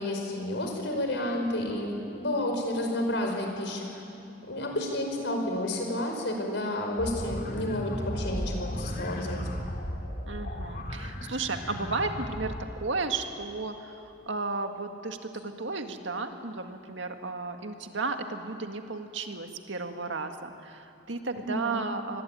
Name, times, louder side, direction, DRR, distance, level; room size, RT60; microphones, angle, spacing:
voice 1, 0.0-3.9 4.5-9.5 21.4-21.8, left 1 dB, 70° left, 3 dB, 5.3 m, -31 dB
sound 1, 7.0-12.7, equal, 50° left, 2.4 m, -35 dB
voice 2, 10.3-22.2, right 3 dB, 80° right, 5 dB, 1.9 m, -34 dB
27.0 x 21.0 x 9.3 m, 2.7 s
head